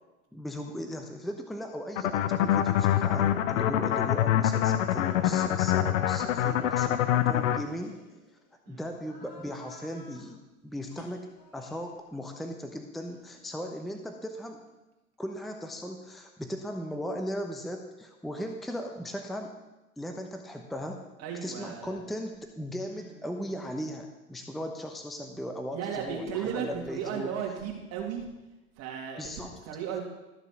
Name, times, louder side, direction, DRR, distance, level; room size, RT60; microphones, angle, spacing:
voice 1, 0.3-8.0 8.7-14.6 15.2-19.5 20.0-21.0 21.4-27.3 29.2-29.6, equal, ahead, 4 dB, 0.8 m, -37 dB
sound 1, 2.0-7.6, left 11 dB, 60° left, 0.9 m, -25 dB
sound 2, 3.9-4.5 4.8-5.2 5.8-8.5 9.0-10.3 10.8-11.9 13.0-14.8, left 2 dB, 35° left, 5.1 m, -53 dB
voice 2, 21.2-22.0 22.9-23.1 25.7-28.3 28.8-29.2 29.6-30.0, right 8 dB, 35° right, 0 dB, 2.7 m, -35 dB
13.5 x 6.9 x 6.1 m, 1.0 s
figure-of-eight pair, 95°, 44 cm